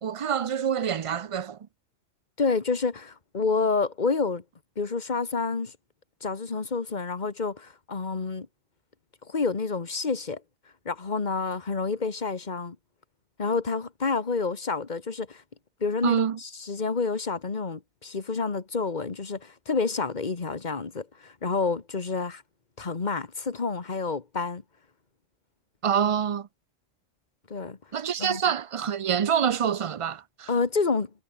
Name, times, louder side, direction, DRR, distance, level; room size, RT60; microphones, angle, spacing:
voice 1, 0.0-1.6 16.0-16.4 25.8-26.5 27.9-30.5, right 8 dB, 60° right, 0.3 m, -26 dB
voice 2, 2.4-4.4 4.8-5.7 6.2-8.5 9.3-10.4 10.8-12.8 13.4-15.4 15.8-22.4 22.8-24.6 27.5-27.8 28.2-28.4 30.5-31.1, left 4 dB, 40° left, 1.6 m, -29 dB
omnidirectional pair, 1.2 m